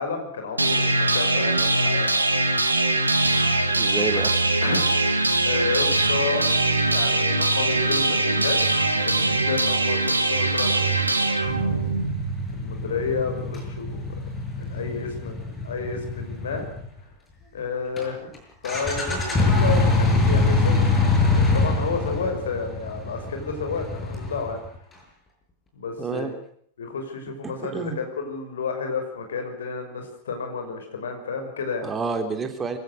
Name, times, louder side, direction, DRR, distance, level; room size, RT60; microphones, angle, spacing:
voice 1, 0.0-2.1 4.6-5.1 5.4-6.5 6.9-8.6 9.0-11.4 12.5-14.0 14.6-16.7 17.5-18.3 18.6-24.6 25.7-26.4 26.8-31.9, left 4 dB, 65° left, 5 dB, 5.8 m, -31 dB
sound 1, 0.6-12.5, right 2 dB, 80° right, 2.2 m, -22 dB
voice 2, 3.8-4.3 26.0-26.3 27.4-28.0 31.8-32.8, right 5 dB, 20° right, 7 dB, 3.4 m, -29 dB
sound 2, 11.5-17.0 18.0-18.1 18.3-18.4 18.6-24.8, left 3 dB, 15° left, 7.6 m, -24 dB
25.0 x 16.5 x 6.5 m, 0.62 s
figure-of-eight pair, 90°, 0 cm